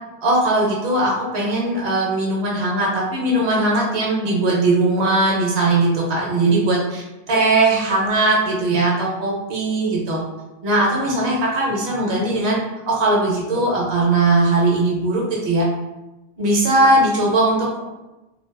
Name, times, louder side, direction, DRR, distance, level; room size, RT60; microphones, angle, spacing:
voice 1, 0.2-10.2 10.6-12.6 12.9-15.7 16.4-17.8, right 2 dB, 75° right, -3 dB, 1.0 m, -19 dB
2.9 x 2.2 x 2.2 m, 1.0 s
omnidirectional pair, 1.1 m